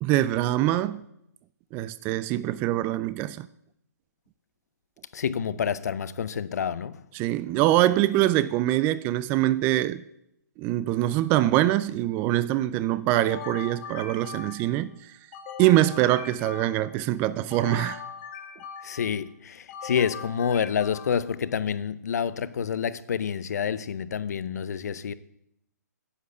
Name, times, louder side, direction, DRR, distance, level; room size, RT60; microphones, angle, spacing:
voice 1, 0.0-1.0 1.7-3.5 7.1-10.0 10.6-14.9 15.6-18.0, right 15 dB, 20° right, 0.3 m, -24 dB
voice 2, 5.1-7.0 18.8-25.1, left 7 dB, 65° left, 0.7 m, -28 dB
sound 1, 13.1-14.8 15.3-17.0 17.5-19.1 19.7-21.4, left 6 dB, 40° left, 2.0 m, -40 dB
9.8 x 8.3 x 6.6 m
hypercardioid pair, 145°, 10 cm